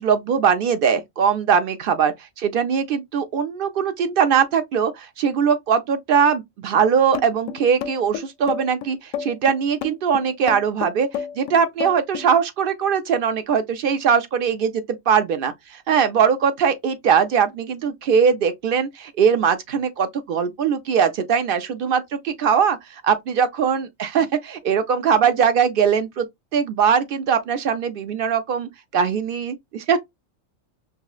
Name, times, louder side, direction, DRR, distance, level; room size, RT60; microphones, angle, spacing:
voice 1, 0.0-11.1 11.4-26.3 26.5-30.0, right 7 dB, 65° right, 0.5 m, -21 dB
sound 1, 7.1-12.3, left 8 dB, 80° left, 1.0 m, -30 dB
5.4 x 2.0 x 2.3 m
omnidirectional pair, 1.4 m